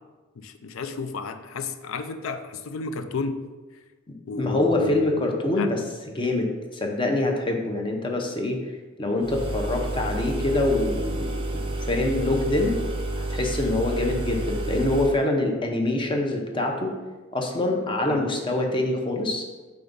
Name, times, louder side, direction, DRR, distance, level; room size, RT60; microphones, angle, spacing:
voice 1, 0.4-3.5 4.3-5.2 5.6-5.8 18.1-18.2, left 4 dB, 75° left, 9 dB, 0.5 m, -32 dB
voice 2, 4.1-5.8 6.1-8.6 9.0-12.8 13.2-16.9 17.3-19.4, left 2 dB, 25° left, 2 dB, 0.7 m, -25 dB
sound 1, 9.2-15.2, right 1 dB, 25° right, 0.5 m, -30 dB
5.3 x 3.5 x 5.2 m, 1.3 s
head